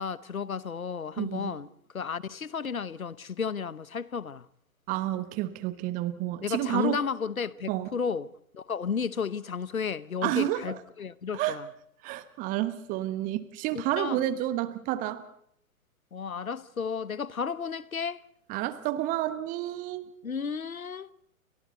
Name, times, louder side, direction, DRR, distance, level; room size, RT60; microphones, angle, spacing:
voice 1, 0.0-1.7 1.9-4.5 6.4-11.7 13.7-14.2 16.1-18.2 20.2-21.1, left 6 dB, 75° left, 1.1 m, -33 dB
voice 2, 1.2-1.6 4.9-7.0 7.7-7.9 10.2-10.6 11.3-11.6 12.0-15.2 18.5-20.1, right 14 dB, 20° right, 1.1 m, -30 dB
29.5 x 25.0 x 4.1 m
figure-of-eight pair, 115°, 42 cm